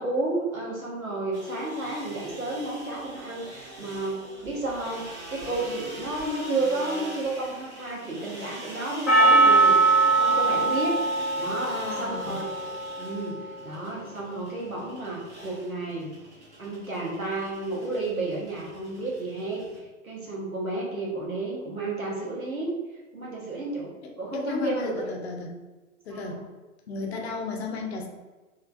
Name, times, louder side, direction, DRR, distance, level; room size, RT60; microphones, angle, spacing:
voice 1, 0.0-9.8 10.2-11.0 11.4-12.5 13.0-16.1 16.6-19.6 20.0-22.8 23.1-25.0 26.1-26.4, right 2 dB, 85° right, -3 dB, 1.1 m, -31 dB
sound 1, 1.3-19.8, right 1 dB, 55° right, 1.3 m, -43 dB
Percussion, 9.1-13.6, right 3 dB, ahead, 0.8 m, -22 dB
voice 2, 11.7-12.4 24.0-25.6 26.1-26.4 26.9-28.1, left 4 dB, 50° left, 2 dB, 0.7 m, -34 dB
3.2 x 2.8 x 2.5 m, 1.2 s
figure-of-eight pair, 110°, 41 cm